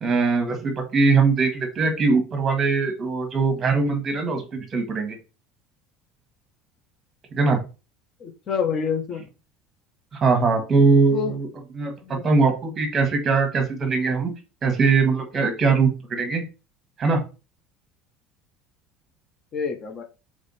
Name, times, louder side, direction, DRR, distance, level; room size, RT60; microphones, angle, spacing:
voice 1, 0.0-5.2 7.3-7.6 10.1-11.5 11.7-14.3 14.6-16.4 17.0-17.2, right 4 dB, 25° right, 6 dB, 1.2 m, -21 dB
voice 2, 8.2-9.3 11.1-11.3 12.0-12.3 19.5-20.0, left 6 dB, 40° left, 7 dB, 0.7 m, -27 dB
3.4 x 3.2 x 4.1 m, 0.31 s
cardioid pair, 140°, 0 cm